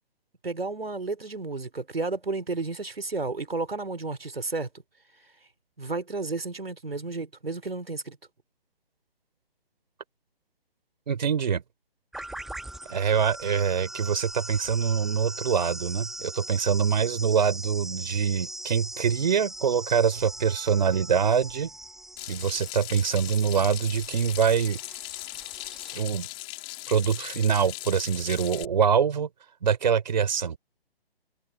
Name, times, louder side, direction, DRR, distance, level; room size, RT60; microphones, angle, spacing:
voice 1, 0.4-4.7 5.8-8.2, right 3 dB, 70° right, 3.8 m, -32 dB
voice 2, 11.1-11.6 12.9-21.7 22.3-24.8 25.9-26.3 26.9-29.3 29.6-30.6, right 7 dB, 45° right, 3.7 m, -24 dB
sound 1, 12.1-26.0, right 1 dB, ahead, 1.6 m, -40 dB
Water tap faucet / Sink (filling or washing), 22.2-28.6, left 27 dB, 15° left, 3.5 m, -39 dB
figure-of-eight pair, 140°, 31 cm